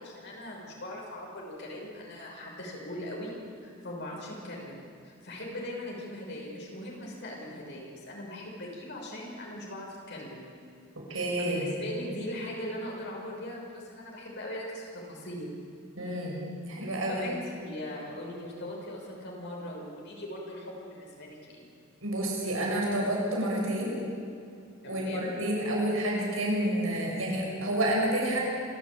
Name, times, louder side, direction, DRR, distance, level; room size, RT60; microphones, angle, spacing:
voice 1, 0.0-3.3 3.6-10.5 11.1-15.6 17.1-21.7 24.8-25.3, left 1 dB, 60° left, -2 dB, 6.1 m, -40 dB
voice 2, 11.1-11.7 16.0-16.4 16.7-17.3 22.0-24.0 24.9-28.4, right 1 dB, 80° right, -2 dB, 7.5 m, -29 dB
27.0 x 14.5 x 8.9 m, 2.4 s
head